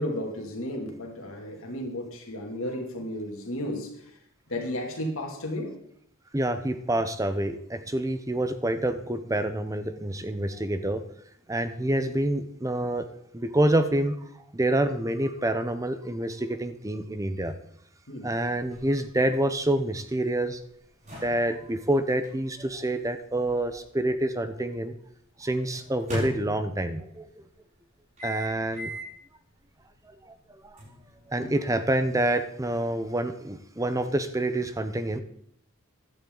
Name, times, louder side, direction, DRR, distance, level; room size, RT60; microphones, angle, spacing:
voice 1, 0.0-4.1 4.5-5.8 18.1-18.3 31.4-31.5, left 1 dB, 70° left, 2 dB, 2.6 m, -33 dB
voice 2, 6.3-11.0 11.5-13.0 13.3-14.2 14.5-17.5 18.2-20.6 21.2-24.9 25.4-27.3 28.2-28.9 30.6-30.8 31.3-35.2, right 1 dB, 15° right, 10 dB, 0.7 m, -27 dB
sound 1, 18.8-24.6 25.7-27.1 28.2-29.2 29.7-29.8 30.8-32.4, equal, 35° right, 6.5 m, -40 dB
15.5 x 11.0 x 3.9 m, 0.71 s
head